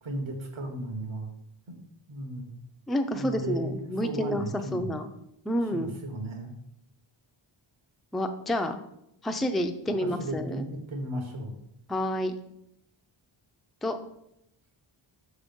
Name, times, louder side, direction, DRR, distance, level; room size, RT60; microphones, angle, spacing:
voice 1, 0.0-1.3 1.7-1.8 2.1-2.5 3.1-5.0 5.7-6.5 10.0-11.5, right 1 dB, 75° right, 3 dB, 1.5 m, -35 dB
voice 2, 2.9-4.4 4.7-5.1 5.5-5.9 8.1-8.8 9.2-10.6 11.9-12.3 13.8-13.9, equal, ahead, 6 dB, 0.3 m, -29 dB
5.8 x 3.6 x 5.3 m, 0.78 s
wide cardioid pair, 130°, 47 cm